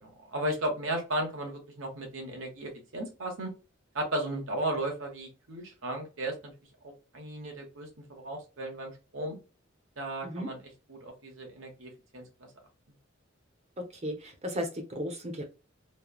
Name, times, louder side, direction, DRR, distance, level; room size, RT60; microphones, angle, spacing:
voice 1, 0.0-3.5 3.9-6.5 6.8-9.3 10.0-12.5, right 1 dB, 85° right, 1 dB, 1.2 m, -35 dB
voice 2, 14.0-15.4, equal, 35° right, 4 dB, 0.8 m, -35 dB
3.3 x 2.2 x 2.3 m, 0.31 s
head